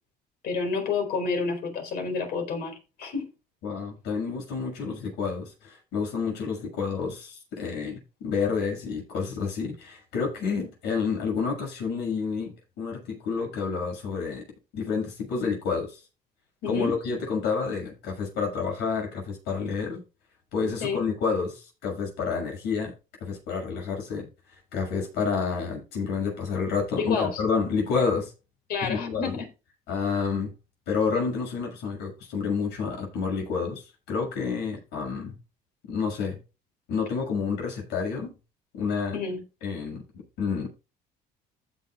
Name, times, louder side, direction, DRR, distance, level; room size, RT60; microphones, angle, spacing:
voice 1, 0.4-3.3 16.6-17.0 20.8-21.0 27.0-27.4 28.7-29.5 39.1-39.4, left 5 dB, 70° left, 4.3 m, -29 dB
voice 2, 3.6-14.4 14.7-16.0 16.7-20.0 20.5-22.9 23.2-24.3 24.7-28.3 28.8-29.4 29.9-30.5 30.9-35.3 35.9-36.4 36.9-38.3 38.7-39.2 39.6-40.7, left 5 dB, 85° left, 6.6 m, -29 dB
15.5 x 7.1 x 2.4 m
cardioid pair, 110°, 17 cm